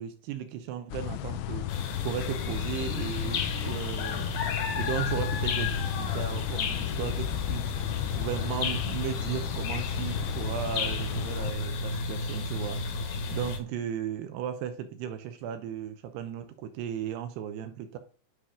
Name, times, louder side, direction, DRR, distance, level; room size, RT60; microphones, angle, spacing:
voice 1, 0.0-4.3 4.7-12.8 13.3-18.0, right 9 dB, 80° right, 2.4 m, -36 dB
sound 1, 0.9-11.5, left 13 dB, 85° left, 2.9 m, -34 dB
sound 2, 1.7-13.6, left 4 dB, 65° left, 2.8 m, -32 dB
9.9 x 5.2 x 3.6 m
omnidirectional pair, 5.6 m